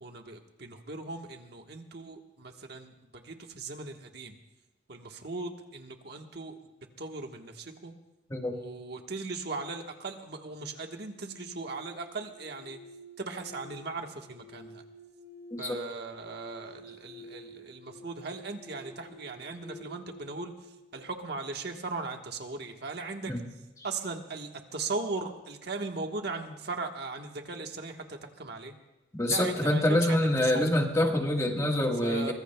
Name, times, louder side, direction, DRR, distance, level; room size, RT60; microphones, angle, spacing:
voice 1, 0.0-2.9 3.2-4.3 4.9-6.6 7.0-7.9 8.5-12.8 13.2-14.8 15.6-20.5 20.9-23.3 23.8-28.7 29.3-30.8 32.0-32.3, right 3 dB, 60° right, 4 dB, 1.3 m, -38 dB
sound 1, 11.0-22.0, equal, 15° right, 4.0 m, -51 dB
voice 2, 29.2-32.3, left 1 dB, 15° left, 2 dB, 1.4 m, -26 dB
23.5 x 20.5 x 2.3 m, 1.1 s
head